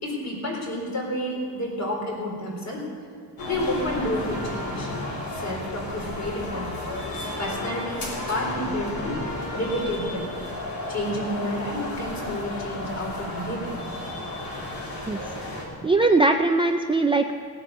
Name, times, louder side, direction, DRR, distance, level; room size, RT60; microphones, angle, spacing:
voice 1, 0.0-2.9 3.4-4.9 5.3-6.9 7.4-9.2 9.5-10.4 10.9-13.8, left 1 dB, 45° left, -2 dB, 4.1 m, -30 dB
sound 1, 3.4-15.7, left 1 dB, 65° left, 3.6 m, -33 dB
voice 2, 15.6-17.3, right 3 dB, 15° right, 5 dB, 0.4 m, -21 dB
18.0 x 8.9 x 6.6 m, 2.5 s
wide cardioid pair, 165°, 39 cm